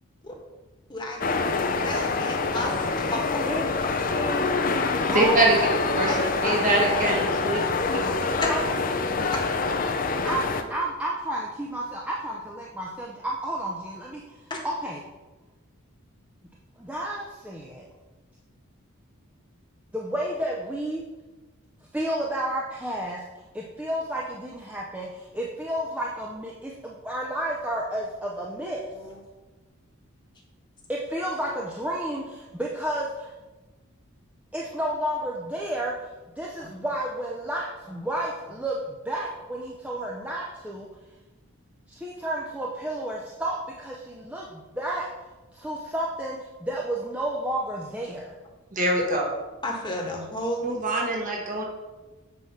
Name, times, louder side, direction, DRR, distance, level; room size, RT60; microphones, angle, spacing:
voice 1, 0.9-1.3 1.8-3.4 6.0-6.6 7.0-7.1 8.4-8.5 9.3-9.4 14.5-14.6 29.1-29.2 36.6-36.7 49.0-49.1 49.6-50.7, left 1 dB, 20° left, 0 dB, 1.3 m, -31 dB
sound 1, 1.2-10.6, left 4 dB, 40° left, 0.5 m, -26 dB
voice 2, 4.1-4.5 5.1-5.6 8.5-8.6 10.2-14.4 14.6-15.0 16.8-17.9 19.9-21.0 21.9-23.2 23.5-28.9 30.9-33.3 34.5-35.9 36.4-40.9 41.9-45.1 45.5-48.4, right 1 dB, 5° right, -3 dB, 0.6 m, -31 dB
voice 3, 5.1-5.6 5.9-7.6 7.9-8.1 48.7-49.2 50.6-51.6, right 2 dB, 35° right, -1 dB, 1.3 m, -24 dB
7.6 x 4.7 x 5.7 m, 1.2 s
head